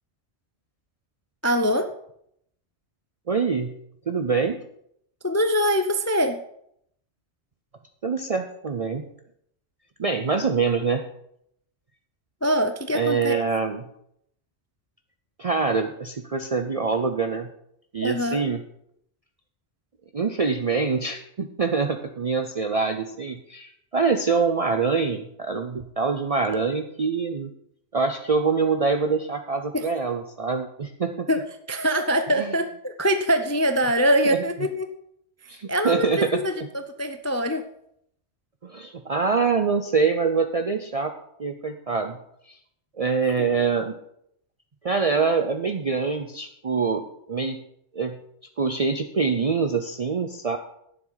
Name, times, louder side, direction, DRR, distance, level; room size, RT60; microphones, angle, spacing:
voice 1, 1.4-1.9 5.2-6.4 12.4-13.4 18.0-18.4 29.7-29.9 31.3-31.4 31.7-34.9 35.7-36.5 37.0-37.6 43.4-43.5, equal, 20° left, 8 dB, 0.4 m, -23 dB
voice 2, 3.3-3.7 4.1-4.6 8.0-9.1 10.0-11.1 12.9-13.8 15.4-17.5 17.9-18.6 20.1-27.5 27.9-31.3 32.4-32.5 34.3-34.4 35.5-36.7 38.6-41.1 41.4-42.2 42.5-42.6 43.0-44.0 44.8-47.6 47.9-48.2 48.6-50.6, right 5 dB, 40° right, 6 dB, 0.6 m, -25 dB
11.5 x 9.9 x 4.0 m, 0.73 s
omnidirectional pair, 1.2 m